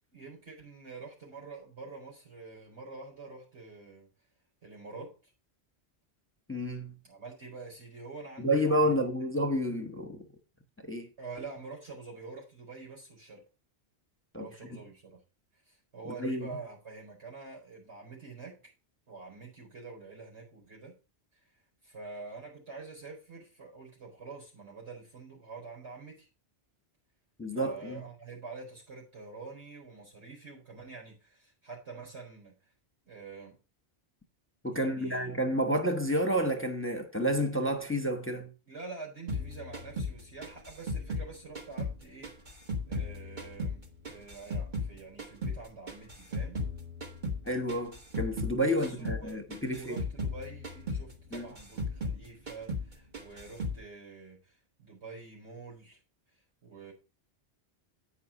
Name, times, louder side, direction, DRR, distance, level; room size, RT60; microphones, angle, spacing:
voice 1, 0.1-4.1 4.6-5.3 7.0-8.9 11.2-13.4 14.4-15.2 15.7-18.6 19.1-21.0 21.8-26.3 27.5-32.6 33.0-33.6 34.7-35.4 38.7-42.3 42.9-46.6 48.6-54.5 54.8-56.0 56.6-56.9, right 4 dB, 90° right, 4.7 m, -46 dB
voice 2, 6.5-6.9 8.4-10.2 10.9-11.1 14.3-14.8 16.1-16.5 27.4-28.0 34.6-38.5 47.5-50.0 51.3-51.5, equal, 10° left, 0.9 m, -30 dB
sound 1, 39.3-42.0 42.2-44.9 45.2-48.6 48.8-49.2 49.5-52.2 52.5-52.9 53.1-53.8, left 2 dB, 45° right, 1.6 m, -36 dB
8.9 x 5.7 x 4.8 m
omnidirectional pair, 1.1 m